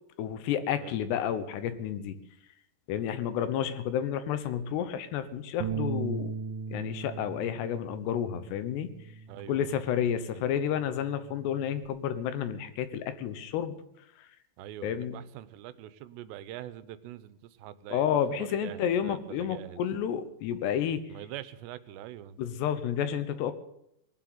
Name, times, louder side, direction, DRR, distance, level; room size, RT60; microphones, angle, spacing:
voice 1, 0.2-2.2 2.9-6.3 6.7-8.9 9.5-13.8 14.8-15.2 17.9-21.0 22.4-23.5, left 9 dB, 80° left, 12 dB, 3.1 m, -30 dB
Bass guitar, 5.6-10.1 10.5-11.9, right 5 dB, 70° right, 2.2 m, -38 dB
voice 2, 9.3-9.8 10.3-10.5 14.6-19.8 21.1-22.4, right 12 dB, 90° right, 15 dB, 2.9 m, -44 dB
19.5 x 7.8 x 9.3 m, 0.78 s
omnidirectional pair, 4.9 m